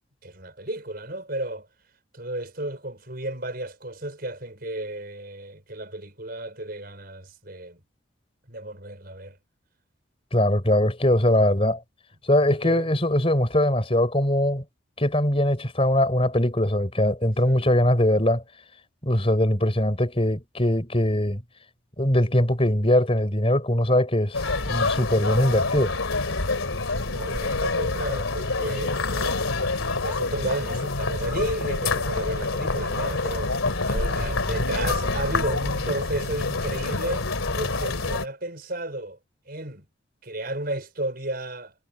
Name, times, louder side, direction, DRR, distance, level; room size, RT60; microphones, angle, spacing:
voice 1, 0.2-1.7 2.1-7.8 8.5-9.4 12.5-12.9 17.4-17.7 27.1-39.2 39.5-39.9 40.2-41.7, right 1 dB, 45° right, 5.5 m, -33 dB
voice 2, 10.3-11.8 12.3-14.6 15.0-18.4 19.0-21.4 22.0-24.4 24.7-25.9, left 1 dB, 30° left, 4.4 m, -21 dB
sound 1, 24.3-38.2, left 3 dB, 90° left, 3.0 m, -27 dB
head